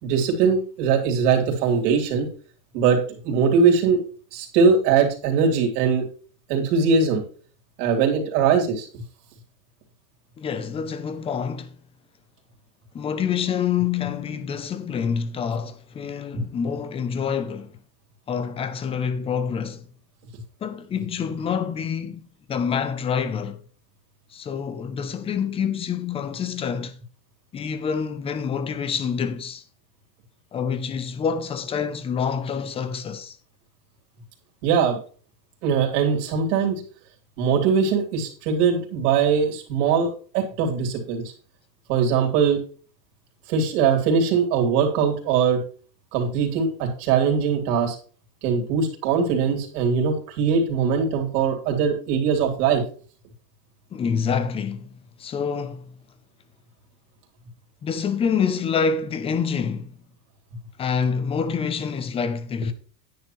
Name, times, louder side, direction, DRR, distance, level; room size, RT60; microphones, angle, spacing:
voice 1, 0.0-2.3 2.7-4.0 4.3-6.1 6.5-7.2 7.8-8.9 16.3-16.4 34.6-35.0 35.6-36.8 37.4-41.2 41.9-42.6 43.5-45.6 46.1-48.0 48.4-52.8, right 6 dB, 65° right, 3.5 m, -21 dB
voice 2, 10.4-11.8 12.9-17.7 18.3-19.9 20.6-23.6 24.3-27.0 27.5-29.6 30.5-33.4 53.9-54.9 55.2-55.9 57.8-59.9 60.8-62.7, left 6 dB, 15° left, 0.4 m, -27 dB
10.0 x 9.9 x 3.1 m
supercardioid pair, 150°, 49 cm